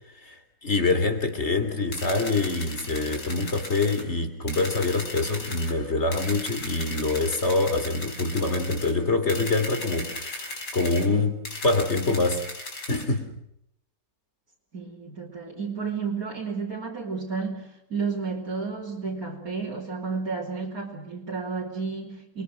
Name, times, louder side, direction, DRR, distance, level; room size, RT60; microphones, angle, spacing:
voice 1, 0.6-12.4 12.9-13.3, left 3 dB, 35° left, 8 dB, 3.3 m, -25 dB
sound 1, 1.9-4.0 4.5-5.7 6.1-8.9 9.3-11.1 11.4-13.0, left 2 dB, 70° left, 5.2 m, -37 dB
voice 2, 14.7-22.4, right 4 dB, 55° right, -4 dB, 3.7 m, -32 dB
29.5 x 22.5 x 6.3 m, 0.78 s
omnidirectional pair, 1.9 m